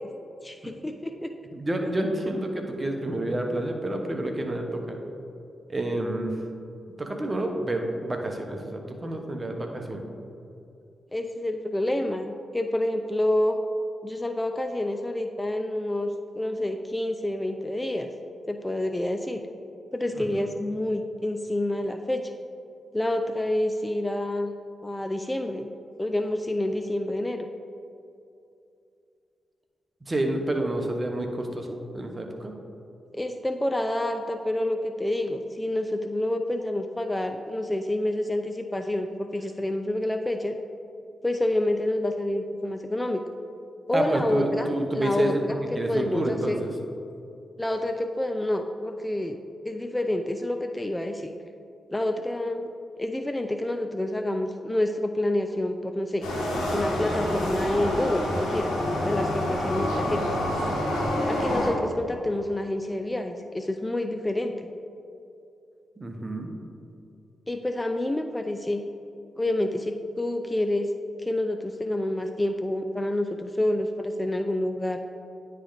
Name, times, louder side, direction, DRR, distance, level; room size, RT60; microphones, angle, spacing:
voice 1, 0.4-1.3 11.1-13.6 14.0-18.1 18.5-19.4 19.9-22.3 22.9-24.5 24.8-25.7 26.0-27.5 33.1-40.6 41.2-43.2 43.9-46.6 47.6-49.4 49.6-51.3 51.9-52.7 53.0-56.3 56.7-60.2 61.3-64.7 67.5-68.8 69.4-70.9 71.2-75.0, left 1 dB, 15° left, 6 dB, 0.4 m, -28 dB
voice 2, 1.5-5.0 5.7-6.4 7.0-10.0 20.1-20.3 30.1-32.5 43.9-45.4 45.7-46.7 66.0-66.5, right 1 dB, 30° right, 3 dB, 1.0 m, -29 dB
sound 1, 56.2-61.7, left 1 dB, 80° left, 1.5 m, -27 dB
9.7 x 3.3 x 3.9 m, 2.6 s
supercardioid pair, 45°, 0 cm